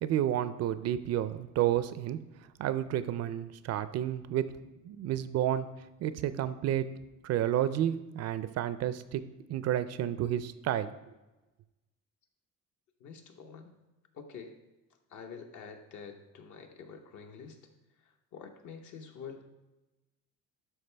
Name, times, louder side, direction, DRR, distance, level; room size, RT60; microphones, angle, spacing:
voice 1, 0.0-2.2 2.6-4.5 4.8-5.7 6.0-6.9 7.2-9.2 9.5-10.9, right 11 dB, 50° right, 14 dB, 0.4 m, -30 dB
voice 2, 13.0-13.7 14.1-14.6 15.1-17.6 18.0-19.4, left 6 dB, 65° left, 5 dB, 1.1 m, -47 dB
12.0 x 4.6 x 3.3 m, 1.1 s
cardioid pair, 145°, 33 cm